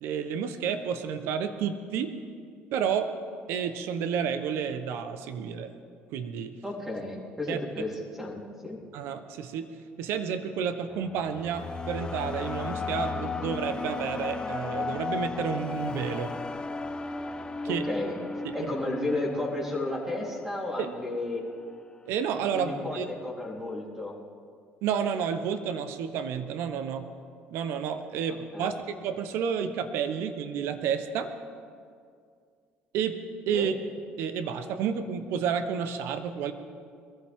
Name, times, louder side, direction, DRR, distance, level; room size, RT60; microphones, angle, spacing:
voice 1, 0.0-2.2 2.7-3.1 3.5-5.8 6.1-6.6 7.5-7.6 8.9-9.7 10.0-16.3 17.6-17.9 18.4-18.7 20.8-20.9 22.1-23.1 24.8-27.1 27.5-31.3 32.9-33.2 33.5-33.7 34.2-36.5, right 7 dB, 75° right, 9 dB, 1.0 m, -30 dB
voice 2, 6.6-8.8 17.8-18.2 18.5-21.4 22.5-24.1 28.5-28.8 33.5-33.7, left 2 dB, 10° right, -3 dB, 3.8 m, -33 dB
sound 1, 10.9-21.1, left 4 dB, 20° left, 0.7 m, -35 dB
22.0 x 14.5 x 3.7 m, 2.2 s
cardioid pair, 95°, 4 cm